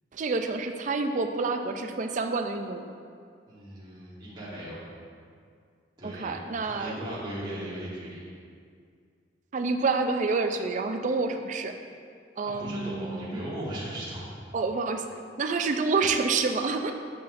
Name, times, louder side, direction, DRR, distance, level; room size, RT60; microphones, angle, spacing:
voice 1, 0.1-2.9 6.0-7.0 9.5-11.7 12.4-13.4 14.5-16.9, right 4 dB, 40° right, 6 dB, 0.4 m, -28 dB
voice 2, 3.5-4.7 6.0-6.4 6.6-8.3 12.4-14.3, right 1 dB, 25° right, -9 dB, 1.4 m, -37 dB
7.5 x 5.6 x 2.6 m, 2.2 s
head